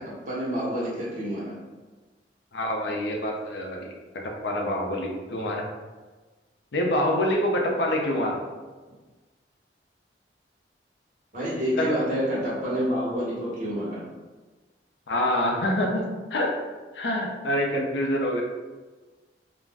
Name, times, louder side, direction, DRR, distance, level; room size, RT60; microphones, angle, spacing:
voice 1, 0.0-1.6 11.3-14.1, equal, 45° right, -7 dB, 1.0 m, -28 dB
voice 2, 2.5-3.9 4.4-5.7 6.7-8.4 11.8-11.9 15.1-16.0 16.3-16.5 16.9-18.4, left 1 dB, 80° left, 1 dB, 0.5 m, -26 dB
2.4 x 2.0 x 3.4 m, 1.3 s
head